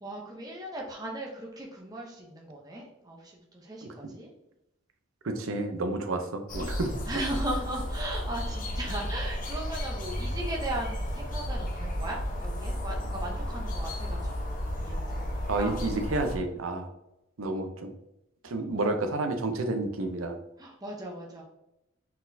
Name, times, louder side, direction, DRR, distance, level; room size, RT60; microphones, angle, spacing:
voice 1, 0.0-4.3 7.1-15.8 20.6-21.4, right 1 dB, 20° right, -1 dB, 0.7 m, -38 dB
voice 2, 5.2-6.9 15.5-16.9 17.4-17.9 18.4-20.4, right 2 dB, 85° right, 7 dB, 0.7 m, -30 dB
sound 1, 6.5-16.4, equal, 40° left, 0.8 m, -33 dB
4.2 x 4.2 x 2.7 m, 0.88 s
head